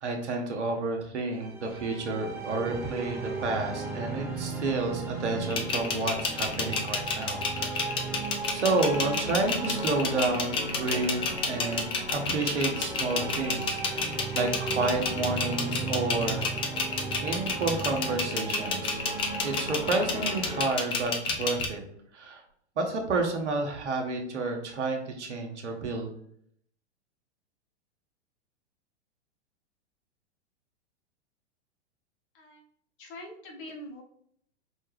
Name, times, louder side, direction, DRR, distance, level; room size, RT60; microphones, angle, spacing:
voice 1, 0.0-8.2 8.5-14.0 14.3-16.5 17.2-19.0 19.4-21.8 22.1-22.4 22.8-26.1, right 3 dB, 80° right, 3 dB, 1.1 m, -30 dB
sound 1, 1.3-20.6, right 3 dB, 5° right, 1.2 m, -36 dB
sound 2, 5.5-21.7, left 4 dB, 15° left, 0.4 m, -30 dB
voice 2, 33.0-34.0, left 1 dB, 50° left, 1 dB, 1.2 m, -43 dB
5.3 x 2.3 x 3.3 m, 0.66 s
hypercardioid pair, 110°, 34 cm